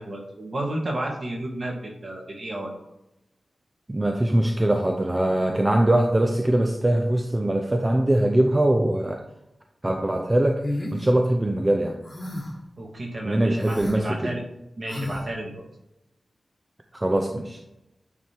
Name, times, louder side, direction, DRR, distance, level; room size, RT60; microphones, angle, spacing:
voice 1, 0.0-2.7 12.8-14.4 14.8-15.6, right 1 dB, 45° right, 0 dB, 1.8 m, -32 dB
voice 2, 3.9-9.2 9.8-10.6 10.9-12.0 13.2-14.3 16.9-17.6, right 1 dB, 20° right, 3 dB, 0.6 m, -22 dB
sound 1, 10.6-11.0 12.1-12.6 13.6-14.0 14.9-15.2, left 1 dB, 20° left, 1.3 m, -32 dB
9.4 x 3.5 x 4.5 m, 0.89 s
wide cardioid pair, 110°, 0 cm